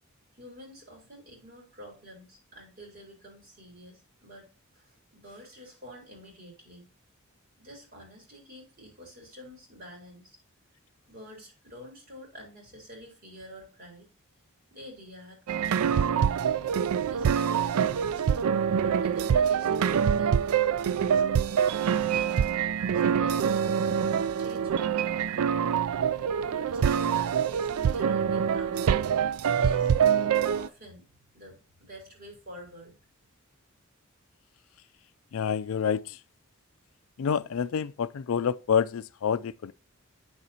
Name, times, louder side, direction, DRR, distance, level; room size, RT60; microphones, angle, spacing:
voice 1, 0.3-4.5 4.7-6.9 7.6-10.4 11.1-14.1 14.7-16.5 17.0-20.4 20.7-21.2 21.8-22.5 22.9-24.1 24.4-25.2 26.3-30.0 30.5-31.1 31.3-33.0, equal, 45° right, 3.8 m, -48 dB
sound 1, 15.5-30.7, right 7 dB, 90° right, 0.4 m, -25 dB
voice 2, 35.3-36.2 37.2-39.7, left 7 dB, 70° left, 0.4 m, -28 dB
8.8 x 6.8 x 2.8 m
head